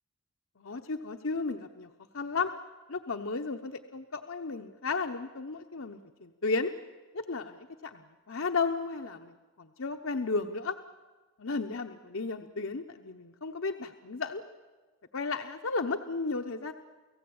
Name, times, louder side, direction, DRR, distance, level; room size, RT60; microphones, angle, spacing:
voice 1, 0.6-2.5 2.9-6.7 7.1-10.7 11.4-14.4 15.1-16.7, left 4 dB, 65° left, 5 dB, 0.9 m, -34 dB
30.0 x 17.0 x 8.7 m, 1.3 s
head